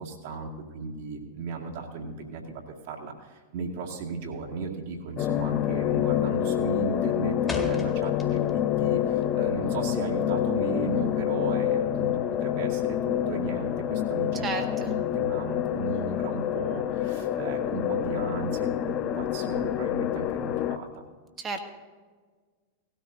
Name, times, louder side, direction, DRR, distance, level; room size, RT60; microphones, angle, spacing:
voice 1, 0.0-14.5 14.8-21.0, right 4 dB, 55° right, 0 dB, 2.1 m, -35 dB
sound 1, 4.3-4.6 4.9-5.3 5.6-6.1 6.4-8.7 9.0-10.5, left 3 dB, 10° left, 1.8 m, -38 dB
sound 2, 5.2-20.8, left 11 dB, 35° left, 0.6 m, -27 dB
voice 2, 14.4-14.9 21.4-21.6, right 4 dB, 25° right, 4 dB, 1.5 m, -32 dB
18.0 x 13.5 x 2.7 m, 1.5 s
figure-of-eight pair, 90°, 0 cm